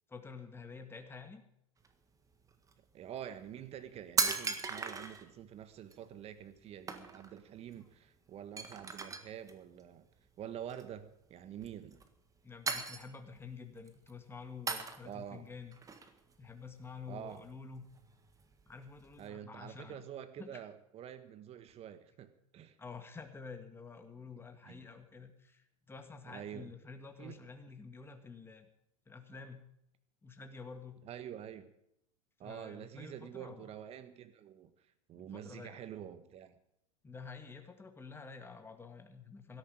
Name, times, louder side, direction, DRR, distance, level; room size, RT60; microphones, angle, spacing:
voice 1, 0.1-1.4 12.4-15.8 16.4-17.9 18.7-20.0 20.4-20.6 22.8-28.7 29.1-29.7 30.2-31.0 32.4-33.7 35.2-35.7 37.0-39.6, left 5 dB, 15° left, 2.0 m, -49 dB
sound 1, 1.8-1.9 2.4-2.7 3.5-3.6 3.8-5.3 5.9-6.0 6.4-6.6 6.9-7.4 7.7-7.8 8.1-8.2 8.6-9.5 10.6-11.1 11.6-12.3 12.7-13.4 13.8-14.1 14.7-15.3 15.7-17.0 17.3-19.3, right 4 dB, 20° right, 1.6 m, -38 dB
voice 2, 2.9-10.1 10.4-12.0 15.0-15.5 17.1-17.5 19.2-22.8 24.2-24.3 24.7-24.9 26.3-26.7 27.2-27.4 31.0-31.7 32.4-34.7 35.1-36.6, right 10 dB, 35° right, 1.6 m, -47 dB
17.0 x 13.0 x 5.1 m
hypercardioid pair, 95°, 18 cm